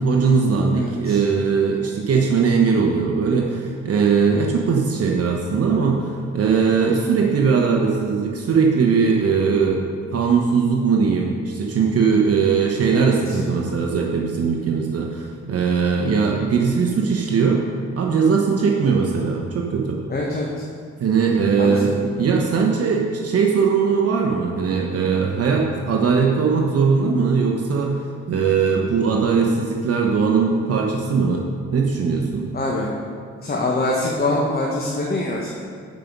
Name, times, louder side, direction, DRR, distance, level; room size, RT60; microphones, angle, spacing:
voice 1, 0.0-9.8 10.1-17.6 18.0-20.0 21.0-28.0 28.3-31.4 31.7-32.5, right 5 dB, 50° right, 0 dB, 1.0 m, -20 dB
voice 2, 0.8-1.2 12.9-13.4 20.1-20.5 21.6-21.9 32.5-32.9 33.4-35.5, left 2 dB, 30° left, -2 dB, 1.2 m, -24 dB
10.5 x 5.3 x 5.4 m, 2.1 s
cardioid pair, 90°, 30 cm